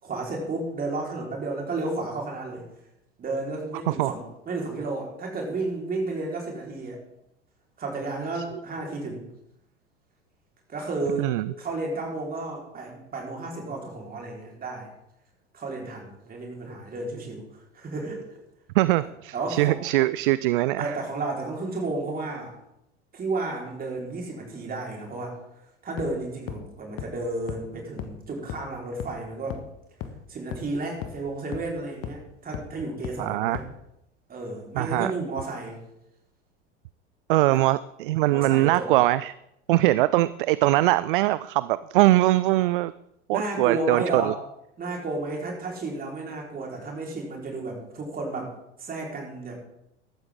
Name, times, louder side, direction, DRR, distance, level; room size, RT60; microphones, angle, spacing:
voice 1, 0.0-2.7 3.2-7.0 7.8-9.3 10.7-11.3 11.6-14.9 15.5-17.5 17.7-18.2 19.0-19.8 20.8-22.5 23.1-25.4 25.8-29.6 30.3-33.7 34.3-35.8 37.5-37.6 38.3-38.9 43.3-44.4 44.8-48.5 48.8-49.6, right 2 dB, 25° right, 0 dB, 4.2 m, -32 dB
voice 2, 18.7-20.9 33.2-33.6 34.8-35.1 37.3-39.3 39.7-42.9 43.3-44.3, right 17 dB, 50° right, 17 dB, 0.4 m, -22 dB
sound 1, 26.0-26.1 26.5-26.6 27.0-27.1 27.5-27.6 28.0-28.1 28.5-28.6 29.0-29.1 29.5-29.6 30.0-30.1 30.5-30.6 31.0-31.1 31.5-31.6 32.0-32.1 32.5-32.6 33.0-33.1 33.5-33.6, left 10 dB, 40° left, 1.5 m, -34 dB
15.0 x 12.5 x 3.7 m, 0.81 s
figure-of-eight pair, 80°, 35 cm